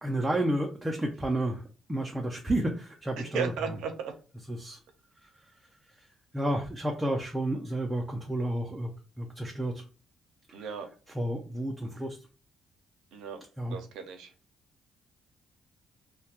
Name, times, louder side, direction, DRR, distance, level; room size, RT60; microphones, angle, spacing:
voice 1, 0.0-1.6 1.9-3.8 4.5-4.8 5.2-5.5 6.0-6.1 6.3-8.9 9.2-9.8 10.5-10.7 11.1-12.2 13.6-13.8, right 1 dB, 15° right, 1 dB, 0.4 m, -31 dB
voice 2, 3.3-4.1 10.5-10.9 13.1-14.3, right 6 dB, 90° right, 6 dB, 0.5 m, -35 dB
2.2 x 2.1 x 2.8 m, 0.37 s
cardioid pair, 90°, 0 cm